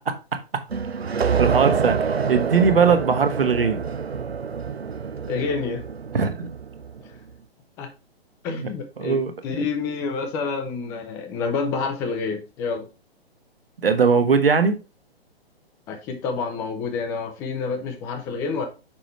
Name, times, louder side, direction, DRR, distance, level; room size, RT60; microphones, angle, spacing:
sound 1, 0.7-7.1, right 6 dB, 80° right, 0.6 m, -26 dB
voice 1, 1.3-3.8 6.1-6.5 8.5-8.6 9.0-9.6 13.8-14.8, right 5 dB, 65° right, 1.3 m, -20 dB
voice 2, 5.3-5.8 7.8-7.9 8.4-9.2 9.4-12.8 15.9-18.7, left 4 dB, 10° left, 0.5 m, -28 dB
6.0 x 5.0 x 3.2 m
figure-of-eight pair, 130°, 31 cm